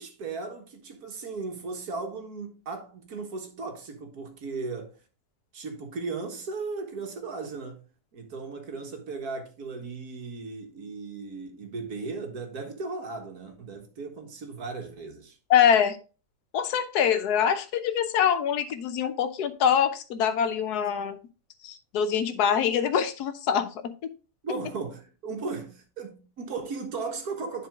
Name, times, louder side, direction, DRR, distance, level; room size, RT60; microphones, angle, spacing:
voice 1, 0.0-4.9 5.5-7.8 8.1-15.4 24.4-27.7, right 4 dB, 75° right, 1.9 m, -36 dB
voice 2, 15.5-16.0 16.5-21.2 21.6-24.1, left 8 dB, 90° left, 1.3 m, -24 dB
10.5 x 4.1 x 3.6 m
omnidirectional pair, 1.6 m